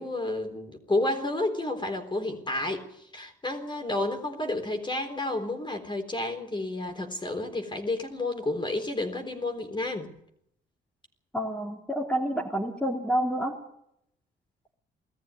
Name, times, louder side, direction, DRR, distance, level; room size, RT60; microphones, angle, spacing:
voice 1, 0.0-10.1, left 2 dB, 25° left, 4 dB, 3.9 m, -31 dB
voice 2, 11.3-13.5, right 1 dB, 5° left, -1 dB, 3.2 m, -28 dB
19.0 x 14.0 x 9.6 m, 0.76 s
cardioid pair, 90°, 20 cm